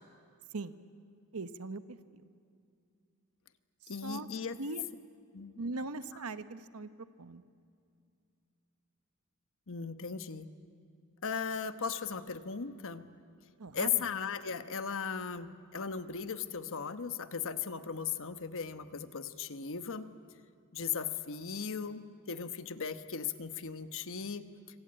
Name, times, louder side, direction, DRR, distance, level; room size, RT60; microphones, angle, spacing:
voice 1, 1.3-2.2 4.0-4.3 4.6-4.8 5.6-6.9 7.2-7.4 13.6-14.0, right 3 dB, 70° right, 11 dB, 1.0 m, -40 dB
voice 2, 3.9-4.6 5.3-5.6 6.1-6.2 9.7-10.5 11.2-13.1 13.7-20.1 20.7-24.4, left 6 dB, 65° left, 10 dB, 1.1 m, -37 dB
26.0 x 25.5 x 8.8 m, 2.4 s
head